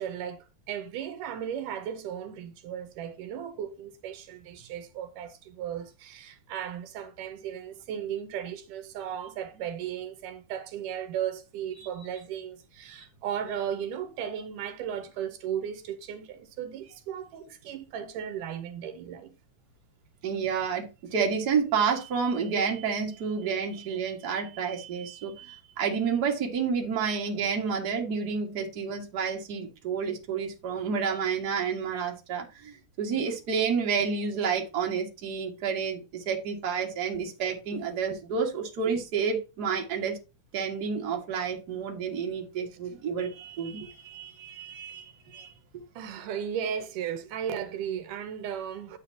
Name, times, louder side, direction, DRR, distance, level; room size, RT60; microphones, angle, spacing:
voice 1, 0.0-19.3 36.8-36.9 45.4-45.5 46.0-49.0, right 9 dB, 80° right, 2.4 m, -36 dB
voice 2, 20.2-40.2 40.5-45.5, right 6 dB, 40° right, 1.7 m, -30 dB
9.5 x 7.4 x 2.8 m
omnidirectional pair, 3.8 m